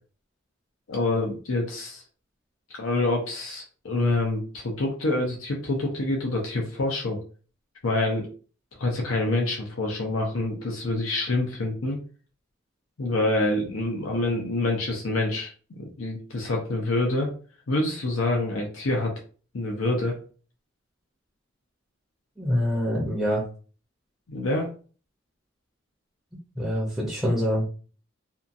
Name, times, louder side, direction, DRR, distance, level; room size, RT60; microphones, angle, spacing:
voice 1, 0.9-2.0 2.8-7.2 7.8-8.3 8.8-12.0 13.0-17.3 17.7-19.1 19.5-20.1 24.3-24.7, left 2 dB, 85° left, 0 dB, 0.6 m, -26 dB
voice 2, 22.4-23.4 26.6-27.7, equal, ahead, -5 dB, 0.6 m, -25 dB
2.7 x 2.2 x 2.6 m, 0.39 s
head